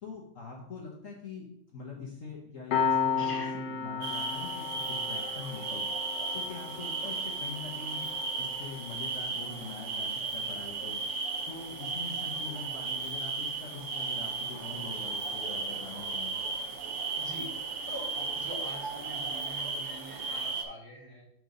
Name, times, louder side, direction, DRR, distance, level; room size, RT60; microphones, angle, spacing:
voice 1, 0.0-1.5 1.7-5.9 6.3-8.1 8.4-11.0 11.5-16.3, left 4 dB, 45° left, -2 dB, 1.4 m, -43 dB
Piano, 2.7-13.8, left 7 dB, 65° left, 1.4 m, -36 dB
voice 2, 3.2-3.6 17.2-17.5 17.8-21.2, equal, 10° right, -4 dB, 1.4 m, -44 dB
sound 1, 4.0-20.6, right 4 dB, 65° right, 0.7 m, -35 dB
5.2 x 4.9 x 5.3 m, 0.75 s
omnidirectional pair, 2.1 m